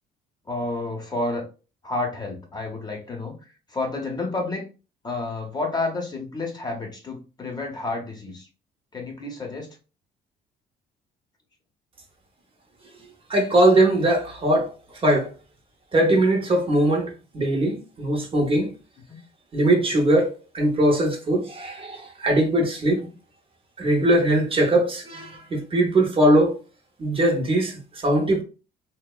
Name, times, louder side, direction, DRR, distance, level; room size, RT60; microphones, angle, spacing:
voice 1, 0.5-1.4 1.8-3.3 3.7-4.7 5.0-8.5 8.9-9.7 19.1-19.2 19.9-20.0 23.0-23.1, left 2 dB, 25° left, 0.6 m, -30 dB
voice 2, 13.3-14.7 15.0-15.3 15.9-18.7 19.5-23.0 23.8-26.6 27.0-28.4, right 1 dB, 35° right, 0.7 m, -21 dB
2.8 x 2.0 x 2.2 m
cardioid pair, 110°, 17 cm